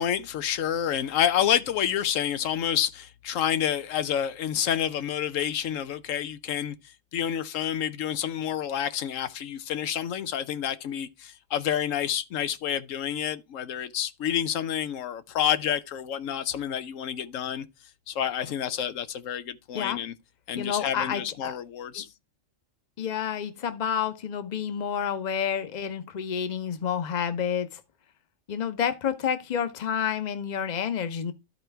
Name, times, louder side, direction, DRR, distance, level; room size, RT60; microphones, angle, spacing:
voice 1, 0.0-17.6 18.1-20.1 20.5-22.1, left 9 dB, 90° left, 1.1 m, -29 dB
voice 2, 20.5-21.6 21.9-22.0 23.0-27.8 28.5-31.3, left 8 dB, 40° left, 0.8 m, -29 dB
13.0 x 4.4 x 3.4 m
omnidirectional pair, 1.3 m